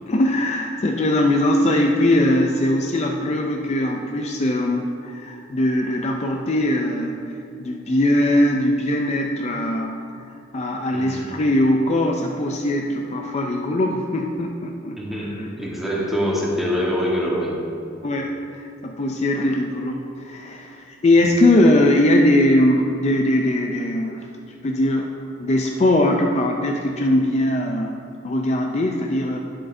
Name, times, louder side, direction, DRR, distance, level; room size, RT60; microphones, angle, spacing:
voice 1, 0.1-7.2 7.6-10.0 10.5-15.5 18.0-24.3 24.6-25.1 25.4-29.4, left 1 dB, 35° left, 1 dB, 0.4 m, -20 dB
voice 2, 10.9-11.3 15.0-17.6 21.2-21.3, equal, ahead, -5 dB, 1.3 m, -24 dB
9.9 x 7.5 x 2.6 m, 2.5 s
head